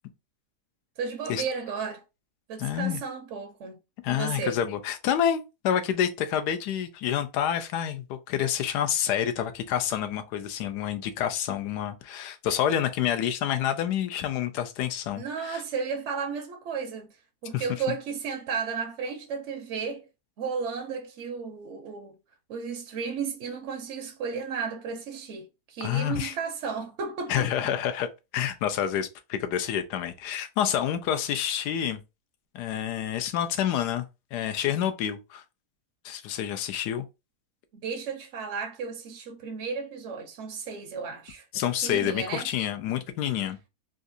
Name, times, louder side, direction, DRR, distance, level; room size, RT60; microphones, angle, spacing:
voice 1, 1.0-2.0 2.5-3.8 4.1-4.6 15.1-17.1 17.4-20.1 20.4-22.1 22.5-27.7 37.7-41.5 41.8-42.5 43.4-43.5, right 5 dB, 65° right, 0.7 m, -34 dB
voice 2, 2.6-3.0 4.0-15.6 17.5-17.7 25.8-26.3 27.3-28.1 28.3-32.0 32.5-34.1 34.3-35.4 36.0-37.1 41.5-43.6, left 10 dB, 90° left, 1.2 m, -28 dB
3.8 x 2.4 x 2.6 m
omnidirectional pair, 1.7 m